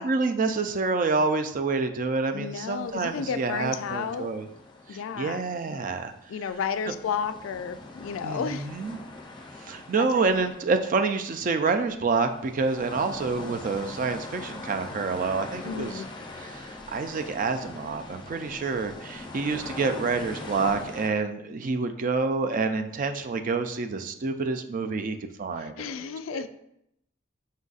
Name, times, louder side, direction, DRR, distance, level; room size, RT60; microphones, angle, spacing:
voice 1, 0.0-4.5 4.9-6.1 6.9-7.0 8.2-9.0 9.7-16.0 16.4-26.4, right 4 dB, 40° right, 7 dB, 0.4 m, -28 dB
voice 2, 2.3-4.3 4.9-5.4 5.9-6.0 6.3-8.7 10.0-10.2 15.6-16.1 25.6-26.5, left 6 dB, 85° left, 11 dB, 0.3 m, -32 dB
sound 1, 2.7-6.1 6.5-21.1, left 2 dB, 25° left, 0.5 m, -42 dB
5.3 x 3.9 x 2.4 m, 0.78 s
head